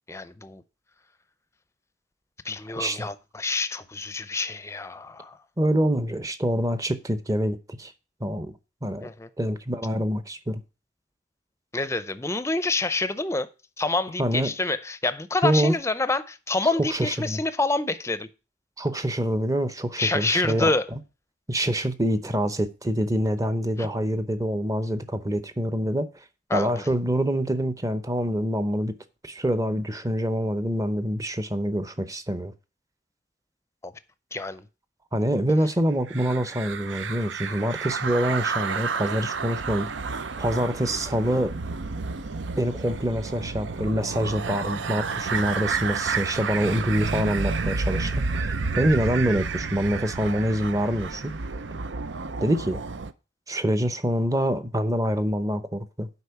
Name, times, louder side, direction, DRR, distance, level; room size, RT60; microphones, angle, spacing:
voice 1, 0.1-0.6 2.4-5.4 9.0-9.3 11.7-13.5 13.8-18.3 20.0-20.9 23.8-23.9 26.5-26.7 33.8-33.9 34.3-34.6, left 3 dB, 15° left, 0.5 m, -27 dB
voice 2, 2.8-3.1 5.6-7.9 8.2-8.5 8.8-9.1 9.4-10.6 14.2-14.5 15.4-15.7 16.8-17.4 18.8-21.0 21.5-26.1 26.5-28.9 29.2-32.5 35.1-41.5 42.6-51.3 52.4-52.8 53.5-56.1, equal, 20° right, 0.7 m, -26 dB
sound 1, 36.1-53.1, right 4 dB, 85° right, 0.6 m, -30 dB
8.2 x 5.2 x 6.8 m
head